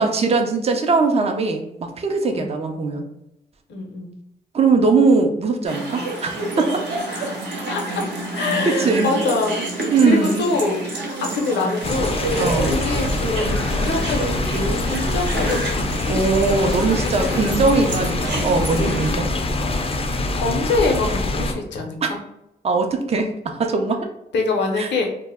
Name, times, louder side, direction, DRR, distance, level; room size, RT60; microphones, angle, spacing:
voice 1, 0.0-3.0 4.5-6.3 6.6-6.8 8.4-9.1 9.9-10.5 12.4-12.8 16.1-19.3 22.0-22.1 22.6-24.1 24.8-24.9, right 4 dB, 35° right, 4 dB, 0.5 m, -20 dB
voice 2, 3.7-4.1 7.1-8.0 8.3-12.2 12.6-17.9 20.3-22.2 24.3-25.1, left 3 dB, 70° left, 2 dB, 0.6 m, -25 dB
sound 1, 5.6-19.1, right 2 dB, 70° right, 0.8 m, -29 dB
sound 2, 11.8-21.5, left 2 dB, 30° left, 0.4 m, -24 dB
2.1 x 2.1 x 3.4 m, 0.85 s
supercardioid pair, 55°, 19 cm